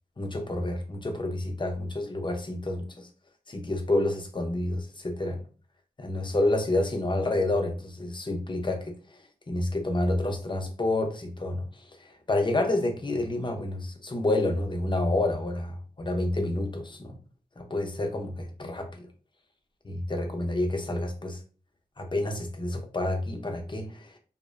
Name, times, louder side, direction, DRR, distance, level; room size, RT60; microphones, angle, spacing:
voice 1, 0.2-3.1 3.5-5.4 6.0-9.2 9.5-17.1 17.6-19.1 19.8-21.4 22.0-24.2, left 2 dB, 35° left, 0.6 m, -29 dB
2.5 x 2.0 x 2.4 m
cardioid pair, 45°, 15 cm